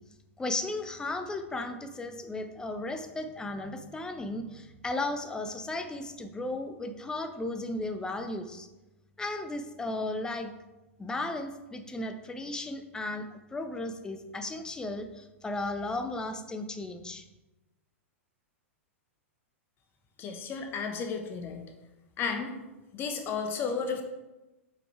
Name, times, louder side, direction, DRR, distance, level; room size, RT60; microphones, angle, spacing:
voice 1, 0.4-8.7 9.2-10.5 11.0-13.2 13.5-17.2, left 2 dB, 10° left, 8 dB, 0.8 m, -35 dB
voice 2, 20.2-21.7 22.2-22.5 22.9-24.0, left 5 dB, 30° left, 5 dB, 1.2 m, -33 dB
8.4 x 5.3 x 4.3 m, 1.0 s
figure-of-eight pair, 100°, 7 cm